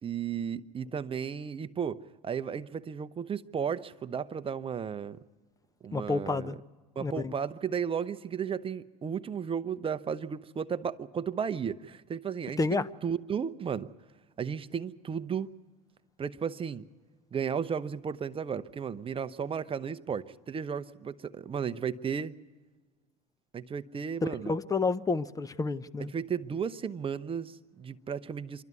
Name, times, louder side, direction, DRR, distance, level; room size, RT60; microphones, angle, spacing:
voice 1, 0.0-5.2 5.8-6.5 7.0-13.9 14.4-15.5 16.2-16.9 17.3-22.4 23.5-24.5 26.0-28.6, right 7 dB, 30° right, 0.7 m, -34 dB
voice 2, 5.9-6.6 7.0-7.3 12.6-12.9 24.2-26.1, left 4 dB, 20° left, 0.7 m, -30 dB
27.0 x 12.5 x 9.5 m
hypercardioid pair, 80°, 19 cm